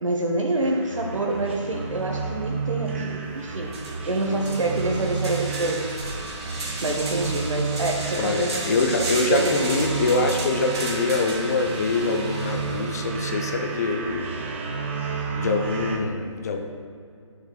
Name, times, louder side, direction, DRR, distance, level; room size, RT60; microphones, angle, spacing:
voice 1, 0.0-5.9 6.8-10.0, right 2 dB, 75° right, 0 dB, 0.9 m, -27 dB
sound 1, 0.6-16.0, right 5 dB, 25° right, 0.5 m, -32 dB
sound 2, 3.2-3.3 3.7-13.2, right 2 dB, 55° right, 1.5 m, -34 dB
voice 2, 8.2-14.4 15.3-16.6, left 3 dB, 30° left, 5 dB, 0.6 m, -24 dB
11.5 x 6.5 x 2.2 m, 2.3 s
figure-of-eight pair, 150°, 17 cm